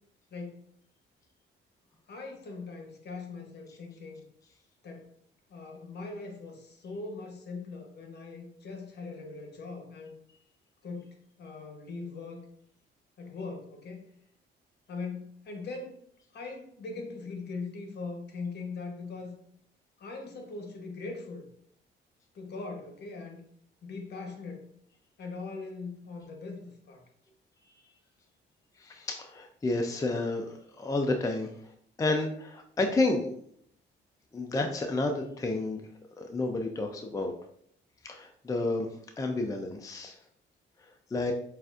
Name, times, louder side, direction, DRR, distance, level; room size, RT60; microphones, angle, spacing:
voice 1, 0.3-0.6 2.1-4.2 4.8-5.1 5.5-10.2 10.8-12.5 13.2-14.0 14.9-16.0 16.3-19.3 20.0-21.4 22.3-23.4 23.8-24.7 25.2-27.0, left 3 dB, 55° left, 3 dB, 1.0 m, -41 dB
voice 2, 28.8-31.5 32.0-33.4 34.3-35.8 36.2-37.3 38.0-38.9 39.2-40.2 41.1-41.3, left 2 dB, 15° left, 4 dB, 0.4 m, -30 dB
6.7 x 2.5 x 2.4 m, 0.65 s
cardioid pair, 90°, 20 cm